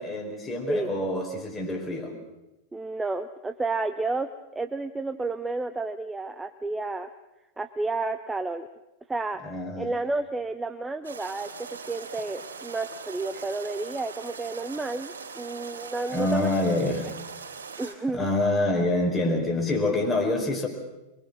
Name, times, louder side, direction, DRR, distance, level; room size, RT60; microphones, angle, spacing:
voice 1, 0.0-2.1 9.4-9.9 16.1-17.1 17.8-20.7, left 2 dB, 15° left, 1 dB, 4.8 m, -26 dB
voice 2, 2.7-7.1 7.6-8.7 9.1-9.4 9.8-16.5 17.8-18.3, right 3 dB, 10° right, 9 dB, 0.8 m, -31 dB
sound 1, 11.0-17.9, right 5 dB, 70° right, 3.8 m, -41 dB
23.5 x 23.0 x 6.2 m, 0.99 s
figure-of-eight pair, 90°, 0 cm